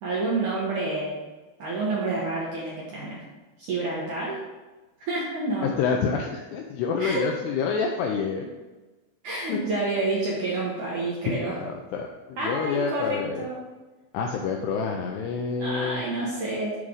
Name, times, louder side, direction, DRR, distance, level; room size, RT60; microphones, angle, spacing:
voice 1, 0.0-1.2 1.6-3.2 3.6-4.4 5.0-5.7 7.0-7.3 9.2-11.6 12.4-13.6 15.6-16.8, right 2 dB, 65° right, -6 dB, 2.1 m, -28 dB
voice 2, 5.6-8.5 9.5-9.6 11.4-13.5 14.1-16.0, left 5 dB, 85° left, 2 dB, 2.4 m, -28 dB
8.3 x 3.7 x 6.3 m, 1.2 s
omnidirectional pair, 5.5 m